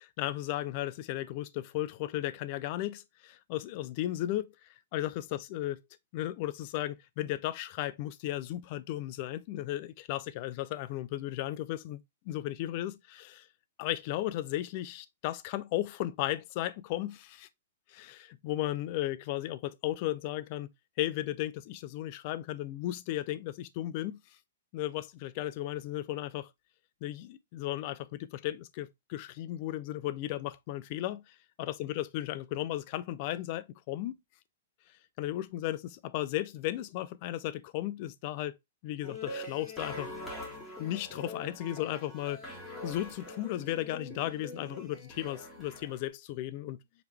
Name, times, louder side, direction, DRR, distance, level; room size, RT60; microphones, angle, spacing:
voice 1, 0.2-4.5 4.9-5.8 6.1-13.5 13.8-17.5 18.0-18.2 18.4-20.7 21.0-24.2 24.7-26.5 27.0-34.2 35.2-38.6 38.8-40.2 40.8-42.4 42.8-46.8, left 14 dB, 35° left, 0.4 m, -35 dB
sound 1, 39.0-46.0, left 1 dB, 10° left, 1.8 m, -44 dB
5.0 x 3.2 x 3.2 m
hypercardioid pair, 155°, 0 cm